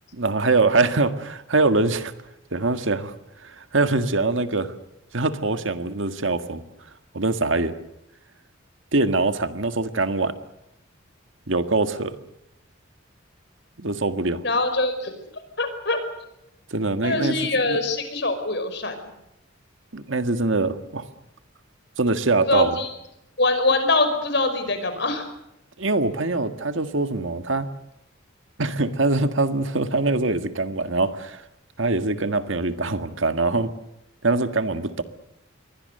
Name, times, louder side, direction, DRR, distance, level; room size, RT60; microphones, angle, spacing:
voice 1, 0.1-2.1 2.5-3.1 3.4-4.7 5.1-6.6 7.1-7.7 8.9-10.3 11.5-12.1 13.8-14.4 16.7-17.8 19.9-21.1 22.0-22.8 25.8-27.7 28.6-31.4 31.8-33.7 34.2-35.0, right 3 dB, 75° right, 9 dB, 1.7 m, -23 dB
voice 2, 14.4-15.1 15.6-16.0 17.0-19.0 22.5-22.9 23.4-25.3, left 2 dB, 60° left, 8 dB, 5.2 m, -23 dB
28.0 x 22.5 x 6.7 m, 0.83 s
head